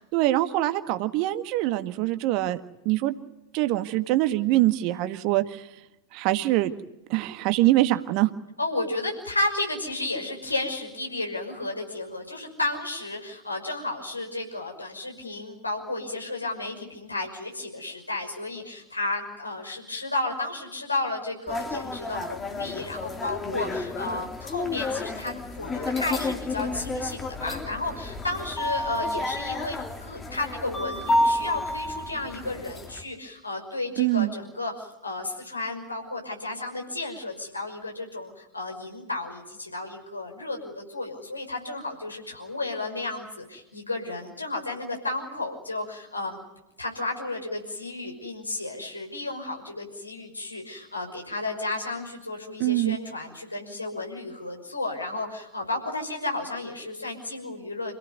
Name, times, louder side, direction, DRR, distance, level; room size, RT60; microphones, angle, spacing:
voice 1, 0.1-3.1 3.5-5.7 6.1-6.7 7.1-8.3 34.0-34.3 52.6-53.0, right 16 dB, 45° right, 10 dB, 1.7 m, -24 dB
voice 2, 8.6-46.4 46.8-57.9, left 2 dB, 80° left, 2 dB, 5.9 m, -33 dB
sound 1, 21.5-33.0, left 2 dB, 15° left, 2.5 m, -30 dB
28.5 x 17.5 x 9.6 m, 0.95 s
figure-of-eight pair, 90°, 0 cm